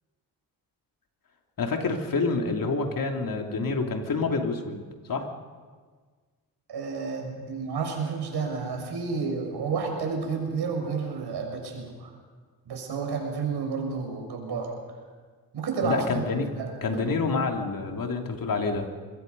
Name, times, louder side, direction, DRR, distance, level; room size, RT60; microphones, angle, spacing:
voice 1, 1.6-5.3 15.8-16.5 16.8-18.9, left 3 dB, 55° left, 3 dB, 3.1 m, -28 dB
voice 2, 6.7-12.1 12.6-14.7 15.5-16.8, right 5 dB, 75° right, 2 dB, 6.4 m, -31 dB
24.0 x 21.0 x 5.5 m, 1.5 s
cardioid pair, 70°, 40 cm